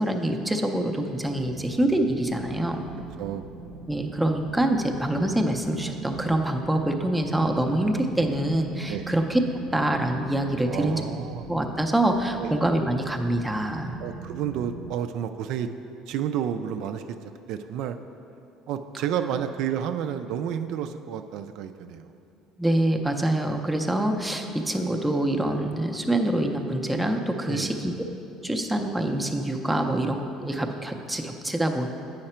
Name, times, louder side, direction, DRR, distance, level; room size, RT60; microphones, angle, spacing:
voice 1, 0.0-2.8 3.9-9.4 9.7-11.0 11.5-14.0 22.6-28.0 28.4-31.9, right 1 dB, 5° right, 3 dB, 0.5 m, -25 dB
sound 1, 1.3-15.0, right 4 dB, 35° right, 0.7 m, -41 dB
voice 2, 3.2-3.5 7.7-8.0 8.9-9.1 10.7-11.5 12.4-12.5 14.0-15.7 16.1-18.0 18.7-22.1 27.5-27.7, right 9 dB, 65° right, 8 dB, 0.3 m, -31 dB
8.9 x 5.7 x 4.3 m, 2.7 s
cardioid pair, 145°, 0 cm